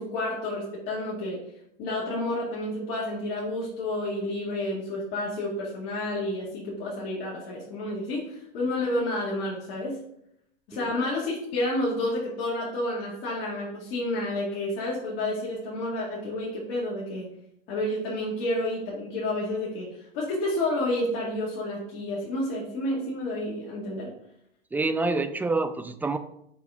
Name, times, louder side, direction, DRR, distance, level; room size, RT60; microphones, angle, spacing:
voice 1, 0.0-1.4 1.8-10.0 10.7-17.3 17.7-19.9 20.1-24.1, left 1 dB, 55° left, -5 dB, 2.1 m, -30 dB
voice 2, 24.7-26.2, right 3 dB, 5° right, 11 dB, 0.3 m, -27 dB
6.7 x 5.0 x 3.7 m, 0.75 s
hypercardioid pair, 100°, 30 cm